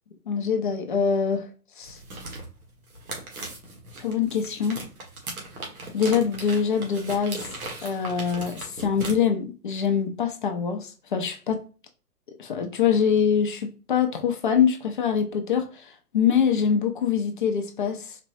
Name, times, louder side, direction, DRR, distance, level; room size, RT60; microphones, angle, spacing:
voice 1, 0.3-1.5 1.8-2.0 4.0-4.8 5.9-7.5 7.8-11.6 12.3-18.2, left 7 dB, 35° left, 0.6 m, -24 dB
sound 1, 1.8-9.1, right 2 dB, 65° right, 1.7 m, -38 dB
4.3 x 3.0 x 2.6 m
figure-of-eight pair, 135°, 47 cm